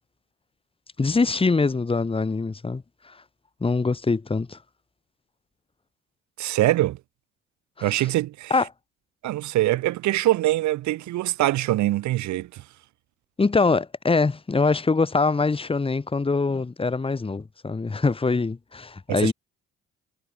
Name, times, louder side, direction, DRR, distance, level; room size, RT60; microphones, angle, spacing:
voice 1, 1.0-3.2 3.6-4.6 7.8-8.0 8.5-8.7 13.4-19.3, left 4 dB, 20° left, 1.0 m, -23 dB
voice 2, 6.4-7.0 7.8-8.5 9.2-12.6 19.1-19.3, right 16 dB, 65° right, 0.9 m, -23 dB
hypercardioid pair, 55°, 31 cm